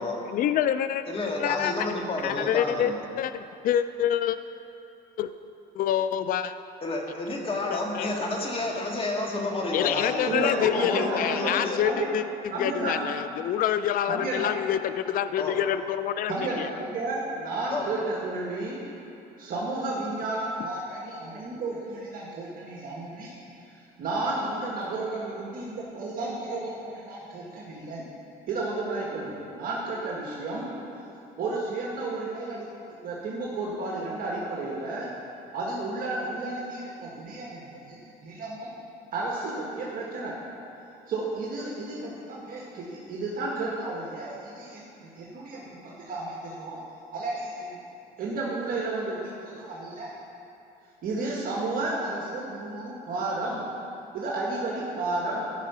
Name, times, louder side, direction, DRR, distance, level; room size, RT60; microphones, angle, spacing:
voice 1, 0.3-1.0 1.4-1.7 2.2-4.4 5.2-5.3 5.7-6.5 7.7-8.1 9.7-12.2 12.6-16.7, left 10 dB, 55° left, 12 dB, 0.4 m, -27 dB
voice 2, 1.1-3.0 6.8-11.8 15.4-15.6 17.7-17.9 20.9-21.0 24.7-25.0 25.4-25.5, left 2 dB, 35° left, 0 dB, 1.8 m, -30 dB
voice 3, 10.3-12.1 12.5-13.0 14.1-14.5 16.3-18.8 19.4-23.3 23.7-28.0 28.5-31.1 31.4-32.7 33.0-35.1 35.5-38.7 39.1-40.3 41.1-46.8 47.1-47.8 48.2-50.1 51.0-53.6 54.1-55.5, right 2 dB, 60° right, -4 dB, 1.7 m, -32 dB
14.5 x 5.7 x 5.6 m, 2.8 s
cardioid pair, 110°, 17 cm